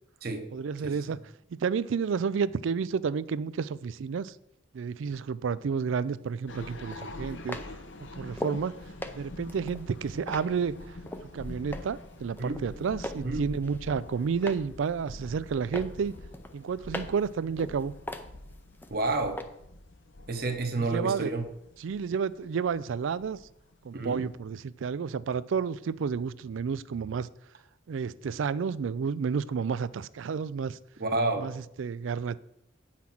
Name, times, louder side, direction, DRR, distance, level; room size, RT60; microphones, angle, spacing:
voice 1, 0.5-1.2 1.6-4.3 4.7-7.6 8.2-8.7 9.1-10.7 11.3-16.1 16.5-17.9 20.8-21.3 21.8-23.4 23.8-27.3 27.9-30.8 31.4-32.4, right 6 dB, 80° right, 0.4 m, -31 dB
sound 1, 5.9-6.0 6.9-8.7 9.0-11.3 11.7-12.1 12.4-13.3 13.6-14.7 15.1-15.5 15.7-17.3 17.6-18.9 19.4-19.5, left 1 dB, 10° left, 0.5 m, -39 dB
sound 2, 6.5-24.4, left 1 dB, 75° left, 0.9 m, -45 dB
voice 2, 18.9-19.4 20.3-21.4 23.9-24.2 31.0-31.5, right 2 dB, 50° right, 1.0 m, -29 dB
8.6 x 5.8 x 6.0 m
head